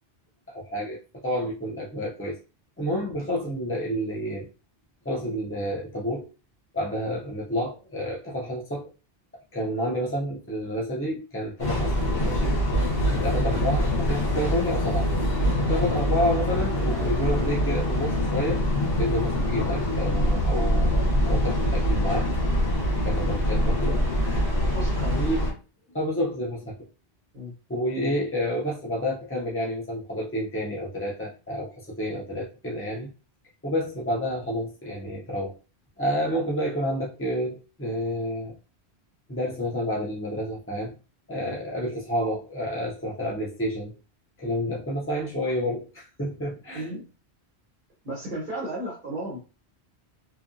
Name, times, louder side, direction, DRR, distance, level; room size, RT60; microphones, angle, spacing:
voice 1, 0.5-2.4 2.8-4.5 5.0-6.3 6.7-8.9 9.5-12.6 13.1-15.1 15.6-20.9 21.2-22.3 23.0-24.1 25.2-25.4 25.9-26.7 27.7-33.1 33.6-35.6 36.0-38.6 39.3-40.9 41.3-43.9 44.4-46.9, equal, 20° left, -4 dB, 0.4 m, -29 dB
Train, 11.6-25.5, equal, 60° left, 1.2 m, -24 dB
voice 2, 24.6-25.2 27.3-27.5 27.9-28.1 46.7-47.1 48.0-49.4, equal, 50° right, -6 dB, 1.2 m, -35 dB
2.8 x 2.5 x 2.5 m, 0.32 s
omnidirectional pair, 1.1 m